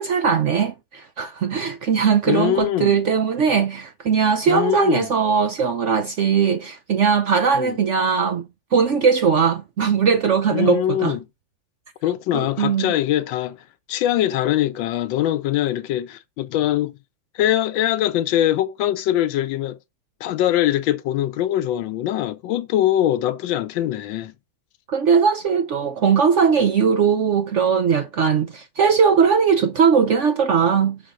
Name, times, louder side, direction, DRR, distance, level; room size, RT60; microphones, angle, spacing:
voice 1, 0.0-11.2 12.3-12.9 24.9-31.0, right 6 dB, 70° right, 0.7 m, -19 dB
voice 2, 2.3-3.0 4.5-5.1 7.5-7.8 10.5-11.2 12.0-13.6 13.9-16.9 17.3-19.8 20.2-24.3, left 12 dB, 90° left, 1.4 m, -22 dB
6.2 x 3.7 x 5.0 m
omnidirectional pair, 2.1 m